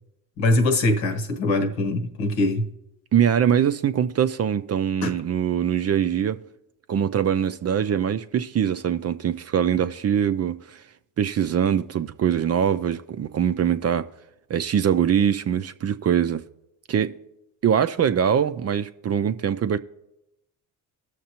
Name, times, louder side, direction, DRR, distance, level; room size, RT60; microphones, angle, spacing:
voice 1, 0.4-2.7 5.0-5.1, left 2 dB, 75° left, 1.2 m, -22 dB
voice 2, 3.1-6.4 6.9-10.8 11.2-14.1 14.5-16.4 16.9-17.1 17.6-19.8, right 8 dB, 35° right, 0.5 m, -23 dB
19.0 x 6.5 x 2.9 m
hypercardioid pair, 60°, 45 cm